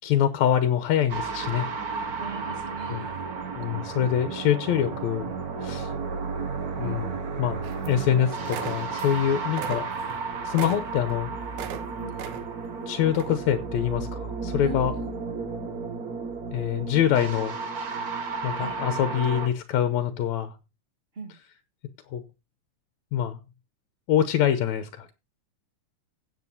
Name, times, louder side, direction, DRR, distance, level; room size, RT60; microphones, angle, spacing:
voice 1, 0.0-1.7 2.9-3.0 3.6-5.3 5.6-5.9 6.8-9.9 10.4-11.3 12.9-14.9 16.5-17.6 18.4-20.6 22.1-22.2 23.1-23.4 24.1-25.1, left 10 dB, 75° left, 2.1 m, -25 dB
sound 1, 1.1-19.5, right 4 dB, 60° right, 1.0 m, -33 dB
voice 2, 2.2-3.4 7.1-7.3 9.3-9.4 12.0-12.2 14.6-15.2 16.7-16.9 18.6-18.8 21.1-21.4, right 2 dB, 20° right, 2.3 m, -40 dB
sound 2, 7.6-8.2 8.4-9.2 9.5-11.8 12.2-12.7 13.1-13.4, right 9 dB, 90° right, 2.5 m, -38 dB
16.5 x 7.8 x 2.7 m
omnidirectional pair, 3.4 m